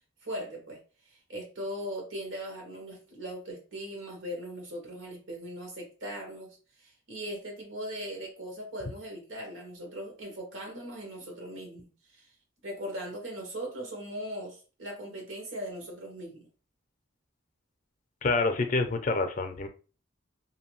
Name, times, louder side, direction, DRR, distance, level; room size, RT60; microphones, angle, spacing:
voice 1, 0.2-0.8 1.0-12.3 12.6-16.5, equal, 85° right, 1 dB, 1.2 m, -39 dB
voice 2, 18.2-19.7, left 3 dB, 40° left, 7 dB, 0.5 m, -27 dB
2.7 x 2.6 x 3.0 m, 0.36 s
head